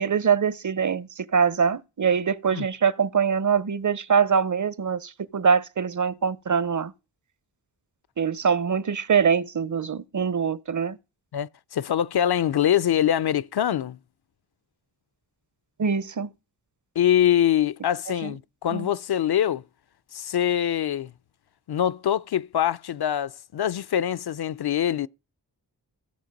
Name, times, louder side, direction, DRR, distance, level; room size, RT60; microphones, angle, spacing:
voice 1, 0.0-6.9 8.2-11.0 15.8-16.3 18.2-18.3 18.7-18.9, right 6 dB, 45° right, 0.7 m, -23 dB
voice 2, 11.3-14.0 17.0-19.6 20.1-21.1 21.7-25.1, left 10 dB, 65° left, 0.5 m, -24 dB
15.5 x 7.2 x 5.2 m
cardioid pair, 50°, 42 cm